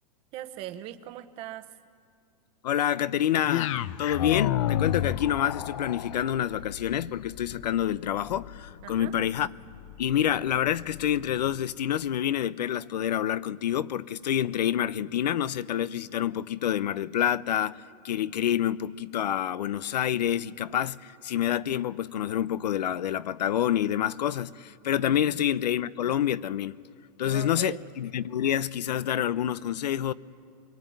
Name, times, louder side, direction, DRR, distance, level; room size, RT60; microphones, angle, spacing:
voice 1, 0.3-1.8 8.8-9.1 25.0-25.4 27.2-27.9, right 13 dB, 25° right, 1.0 m, -40 dB
voice 2, 2.6-3.7 4.0-9.5 10.0-26.8 27.2-30.1, left 10 dB, 85° left, 0.8 m, -27 dB
sound 1, 3.4-11.7, left 11 dB, 50° left, 0.7 m, -33 dB
24.0 x 22.5 x 9.4 m
supercardioid pair, 165°, 21 cm